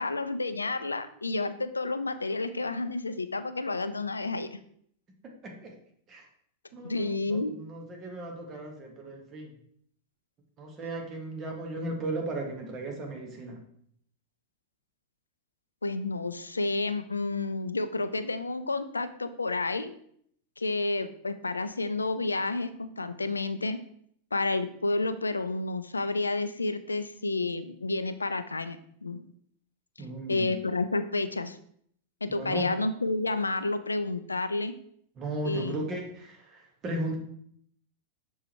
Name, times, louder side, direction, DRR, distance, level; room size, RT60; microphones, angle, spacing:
voice 1, 0.0-4.6 6.8-7.6 15.8-19.9 20.6-23.8 24.3-29.2 30.3-31.6 32.2-34.7 35.4-35.9, left 3 dB, 80° left, 11 dB, 0.4 m, -30 dB
voice 2, 6.7-9.5 10.6-13.6 30.0-30.6 32.3-32.7 35.2-37.2, right 1 dB, 30° right, 1 dB, 1.6 m, -36 dB
6.6 x 4.5 x 3.2 m, 0.66 s
figure-of-eight pair, 90°, 0 cm